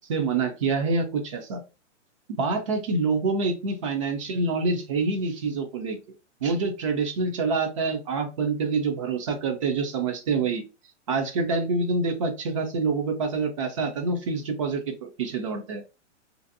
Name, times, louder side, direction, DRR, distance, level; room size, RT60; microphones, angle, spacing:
voice 1, 0.1-1.6 2.4-6.0 6.4-10.6 11.1-15.8, right 4 dB, 30° right, 5 dB, 0.4 m, -26 dB
2.6 x 2.4 x 2.5 m, 0.30 s
hypercardioid pair, 150°, 37 cm